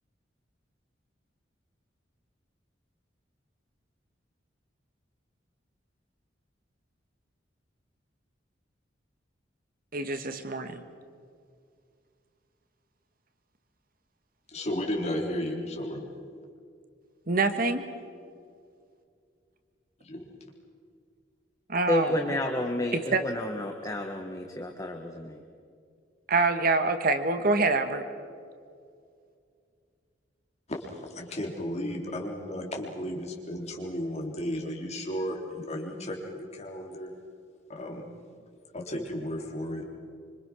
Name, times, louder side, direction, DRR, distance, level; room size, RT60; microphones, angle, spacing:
voice 1, 9.9-10.8 17.3-17.9 21.7-22.1 22.9-23.2 26.3-28.0, right 3 dB, 55° right, 8 dB, 1.6 m, -25 dB
voice 2, 14.5-16.0 20.0-20.2 30.7-30.8 31.1-37.1 37.7-38.0 38.7-39.8, left 1 dB, 35° left, 0 dB, 3.8 m, -34 dB
voice 3, 21.9-25.4, left 1 dB, 20° left, 3 dB, 1.5 m, -30 dB
26.0 x 25.5 x 6.3 m, 2.2 s
head